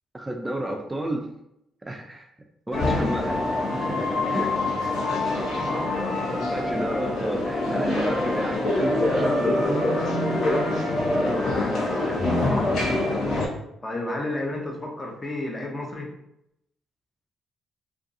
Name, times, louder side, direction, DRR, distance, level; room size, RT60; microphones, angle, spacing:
voice 1, 0.1-1.3 1.8-2.3 2.7-3.4 3.7-4.5 4.8-5.0 6.4-9.9, right 1 dB, 15° right, 2 dB, 0.3 m, -31 dB
sound 1, 2.7-13.5, left 2 dB, 70° left, 1.0 m, -25 dB
voice 2, 5.0-6.3 8.3-8.5 11.1-12.8 13.8-16.1, left 1 dB, 25° left, 0 dB, 0.6 m, -32 dB
2.5 x 2.3 x 2.5 m, 0.80 s
cardioid pair, 90°, 0 cm